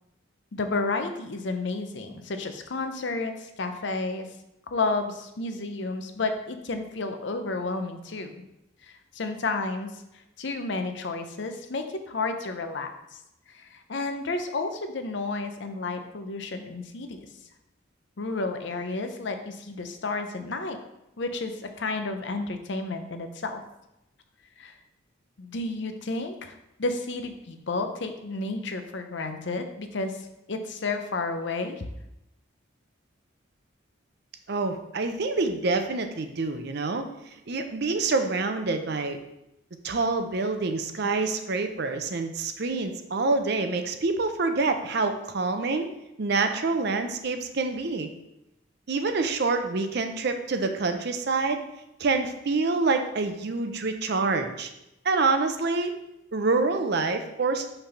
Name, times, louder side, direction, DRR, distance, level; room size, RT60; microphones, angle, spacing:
voice 1, 0.5-4.3 4.7-8.3 8.8-9.9 10.4-12.9 13.5-17.2 18.2-20.8 21.2-23.6 24.6-24.7 25.4-30.2 30.5-31.9, left 3 dB, 60° left, 7 dB, 0.6 m, -31 dB
voice 2, 34.5-37.1 37.5-39.2 39.8-45.9 46.2-48.1 48.9-51.6 52.0-54.7 55.0-55.9 56.3-57.7, right 3 dB, 55° right, 7 dB, 0.6 m, -26 dB
5.8 x 3.4 x 5.7 m, 0.88 s
head